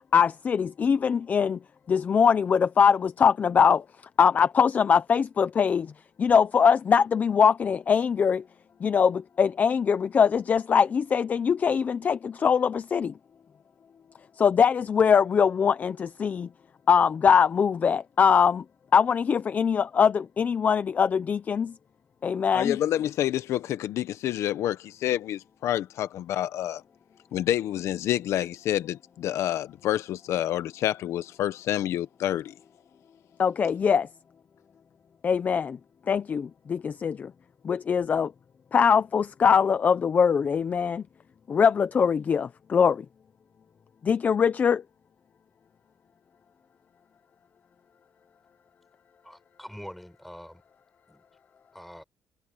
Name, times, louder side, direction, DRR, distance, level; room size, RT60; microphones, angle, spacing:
voice 1, 0.1-1.6 1.9-3.8 4.2-5.9 6.2-8.4 8.8-13.1 14.4-16.5 16.9-18.6 18.9-21.7 22.2-22.8 33.4-34.1 35.2-35.8 36.1-37.3 37.6-38.3 38.7-41.0 41.5-43.0 44.0-44.8, left 6 dB, 35° left, 0.6 m, -22 dB
voice 2, 22.5-26.8 27.3-32.5, left 12 dB, 75° left, 0.9 m, -28 dB
voice 3, 49.2-50.6 51.1-51.3 51.7-52.0, equal, ahead, 5.4 m, -44 dB
cardioid pair, 145°, 5 cm